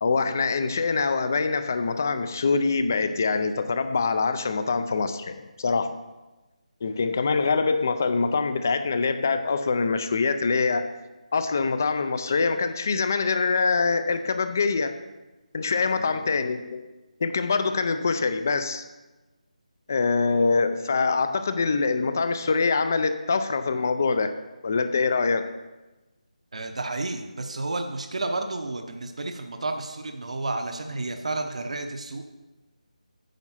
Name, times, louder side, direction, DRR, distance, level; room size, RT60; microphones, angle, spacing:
voice 1, 0.0-6.0 6.8-10.9 11.3-14.9 15.5-16.8 17.2-18.8 19.9-24.3 24.6-25.5, left 4 dB, 25° left, 10 dB, 0.4 m, -24 dB
voice 2, 15.8-16.2 26.5-32.3, right 2 dB, 55° right, 5 dB, 0.9 m, -31 dB
9.1 x 6.0 x 5.6 m, 1.1 s
figure-of-eight pair, 175°, 4 cm